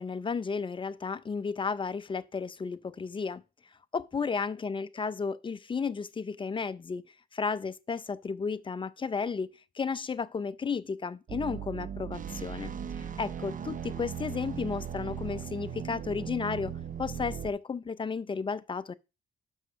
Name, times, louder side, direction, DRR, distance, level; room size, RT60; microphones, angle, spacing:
voice 1, 0.0-3.4 3.9-7.1 7.3-12.7 13.0-16.7 17.0-18.9, left 5 dB, 25° left, 0.5 m, -33 dB
sound 1, 11.3-17.5, right 8 dB, 40° right, 0.7 m, -38 dB
6.4 x 5.4 x 6.0 m
cardioid pair, 90°, 20 cm